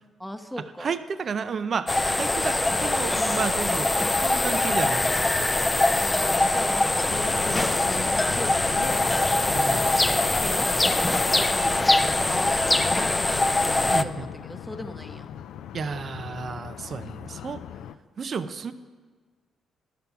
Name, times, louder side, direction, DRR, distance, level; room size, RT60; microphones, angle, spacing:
voice 1, 0.2-0.9 6.0-9.1 10.4-11.9 12.2-13.3 14.0-15.3, equal, 5° left, 6 dB, 0.9 m, -38 dB
voice 2, 0.8-5.5 9.5-9.9 13.9-14.3 15.7-17.6 18.2-18.7, right 6 dB, 50° right, 11 dB, 0.5 m, -32 dB
sound 1, 1.9-14.0, left 2 dB, 20° left, 0.4 m, -23 dB
sound 2, 7.1-18.0, left 9 dB, 80° left, 0.3 m, -39 dB
sound 3, 7.1-12.4, left 3 dB, 50° left, 1.0 m, -41 dB
11.5 x 6.8 x 5.7 m, 1.5 s
cardioid pair, 75°, 0 cm